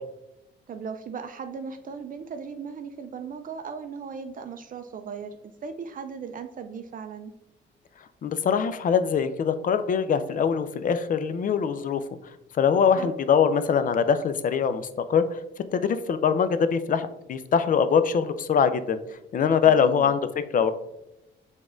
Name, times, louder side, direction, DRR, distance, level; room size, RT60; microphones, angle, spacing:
voice 1, 0.7-7.3 12.9-13.1 19.8-20.1, right 6 dB, 45° right, 8 dB, 0.4 m, -37 dB
voice 2, 8.2-12.0 12.6-15.4 15.7-19.0 19.3-20.2 20.5-20.7, left 7 dB, 45° left, 11 dB, 0.4 m, -23 dB
6.0 x 3.6 x 2.5 m, 0.91 s
cardioid pair, 90°, 20 cm